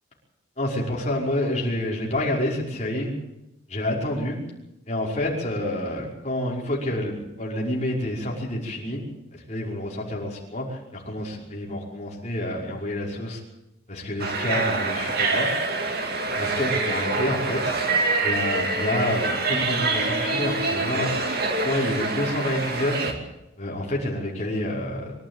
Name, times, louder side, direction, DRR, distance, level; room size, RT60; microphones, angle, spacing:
voice 1, 0.6-3.1 3.7-4.4 4.9-9.1 9.5-13.4 13.9-15.5 16.4-17.9 18.2-21.2 21.6-23.1 23.6-25.2, left 1 dB, 35° left, -3 dB, 5.5 m, -28 dB
sound 1, 14.2-23.1, right 3 dB, 50° right, 2.5 m, -25 dB
24.5 x 12.5 x 9.1 m, 0.86 s
head